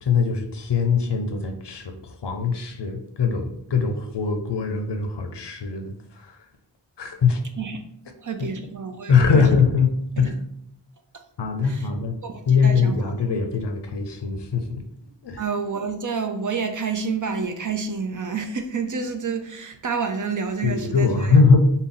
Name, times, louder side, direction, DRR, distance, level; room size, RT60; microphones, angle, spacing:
voice 1, 0.0-6.5 7.0-7.4 8.4-8.5 9.1-9.9 10.2-10.4 11.4-12.2 12.5-14.8 15.2-15.4 20.6-21.6, left 5 dB, 70° left, 0.6 m, -22 dB
voice 2, 8.2-9.6 11.1-11.2 11.6-11.9 12.2-13.0 15.4-21.3, right 5 dB, 45° right, 0.5 m, -29 dB
3.6 x 2.1 x 3.8 m
wide cardioid pair, 60°, 44 cm